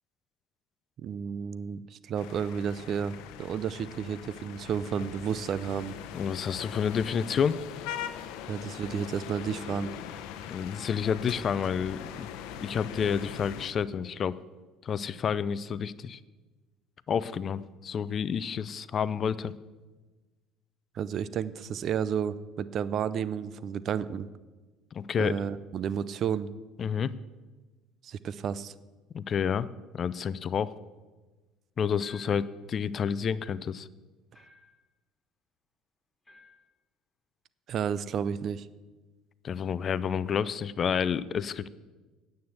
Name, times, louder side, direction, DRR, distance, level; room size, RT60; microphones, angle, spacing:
voice 1, 1.0-5.9 8.5-9.9 20.9-24.3 25.2-26.5 28.0-28.7 37.7-38.7, right 8 dB, 50° right, 16 dB, 0.5 m, -32 dB
sound 1, 2.1-13.7, left 9 dB, 70° left, 0.8 m, -41 dB
voice 2, 6.1-7.6 10.5-12.3 12.6-14.4 14.8-16.2 17.1-19.5 24.9-25.3 26.8-27.1 29.1-29.7 29.9-30.7 31.8-33.9 39.4-41.7, left 7 dB, 45° left, 17 dB, 0.5 m, -29 dB
sound 2, 32.0-32.5 34.3-34.8 36.2-36.7, left 3 dB, 15° left, 3.5 m, -55 dB
9.4 x 7.9 x 7.9 m, 1.2 s
hypercardioid pair, 70°, 0 cm